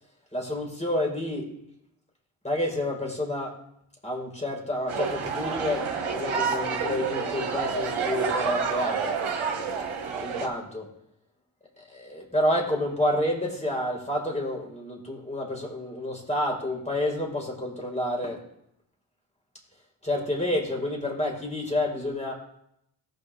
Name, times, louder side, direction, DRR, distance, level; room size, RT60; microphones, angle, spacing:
voice 1, 0.3-1.5 2.4-3.6 4.0-9.2 9.7-9.8 10.2-10.9 11.8-18.4 20.0-22.3, left 1 dB, 15° left, -1 dB, 4.6 m, -29 dB
sound 1, 4.9-10.5, right 5 dB, 85° right, 1.7 m, -29 dB
19.0 x 6.4 x 3.5 m, 0.76 s
cardioid pair, 40°, 48 cm